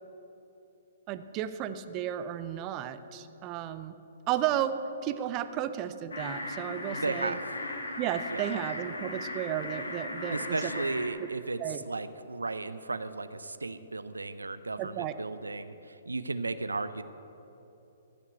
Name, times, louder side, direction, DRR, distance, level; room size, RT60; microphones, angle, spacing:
voice 1, 1.1-4.0 4.3-7.4 8.0-10.7 11.6-11.8 14.8-15.1, right 11 dB, 30° right, 11 dB, 0.6 m, -33 dB
sound 1, 6.1-11.1, left 2 dB, 75° left, 1.6 m, -37 dB
voice 2, 6.9-7.4 8.3-8.5 10.3-11.6 11.9-17.0, right 3 dB, 85° right, 12 dB, 0.5 m, -35 dB
14.0 x 6.0 x 8.4 m, 3.0 s
figure-of-eight pair, 125°, 0 cm